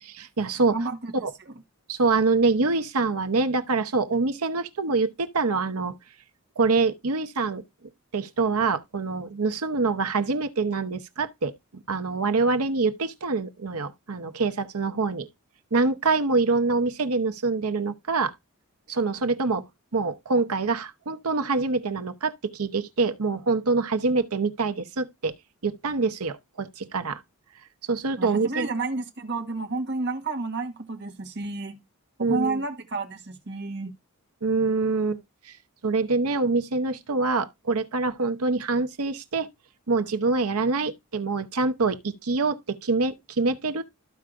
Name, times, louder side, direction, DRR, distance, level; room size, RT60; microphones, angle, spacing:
voice 1, 0.0-0.8 1.2-1.3 1.9-5.9 6.6-7.6 8.1-11.5 11.9-15.3 15.7-18.3 18.9-19.7 19.9-25.3 25.6-27.2 27.9-28.7 32.2-32.6 34.4-35.2 35.5-35.6 35.8-39.5 39.9-43.8, right 3 dB, 80° right, 0.9 m, -25 dB
voice 2, 0.7-1.5 28.2-31.8 32.2-33.9, right 3 dB, 50° right, 1.3 m, -31 dB
14.0 x 4.7 x 2.4 m
head